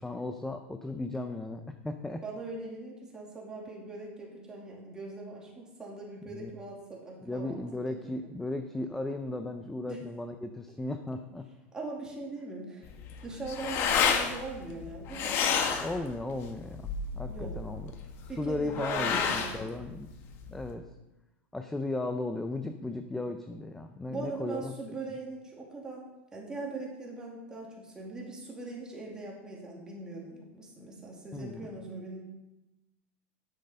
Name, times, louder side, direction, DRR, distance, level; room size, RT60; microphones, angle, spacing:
voice 1, 0.0-2.2 6.3-6.5 7.2-11.4 15.7-17.9 18.4-20.1 20.5-20.8 21.5-24.7 31.3-31.7, left 2 dB, 5° left, 7 dB, 0.5 m, -36 dB
voice 2, 2.2-8.3 9.9-10.1 11.7-12.9 13.2-15.4 17.3-17.5 18.3-19.8 24.1-32.2, right 3 dB, 10° right, -2 dB, 2.3 m, -41 dB
sound 1, 12.8-20.7, left 6 dB, 40° left, 1.1 m, -31 dB
10.0 x 6.5 x 5.4 m, 1.0 s
supercardioid pair, 155°, 6 cm